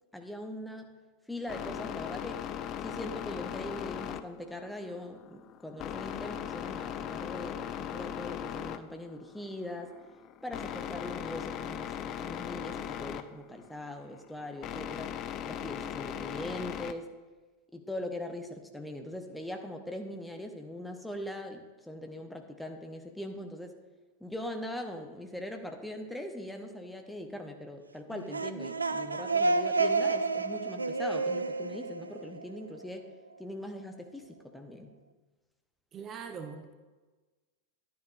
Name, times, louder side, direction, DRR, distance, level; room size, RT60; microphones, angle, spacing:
voice 1, 0.1-1.0 1.3-2.5 2.8-9.9 10.4-15.1 15.5-17.1 17.7-23.8 24.2-33.1 33.4-34.9, left 1 dB, 5° left, 4 dB, 0.9 m, -41 dB
sound 1, 1.5-16.9, left 10 dB, 35° left, 0.4 m, -39 dB
sound 2, 28.1-32.8, right 3 dB, 80° right, 0.3 m, -30 dB
voice 2, 35.9-36.7, right 6 dB, 30° right, 6 dB, 0.7 m, -41 dB
11.5 x 10.0 x 2.4 m, 1.3 s
figure-of-eight pair, 90°, 0 cm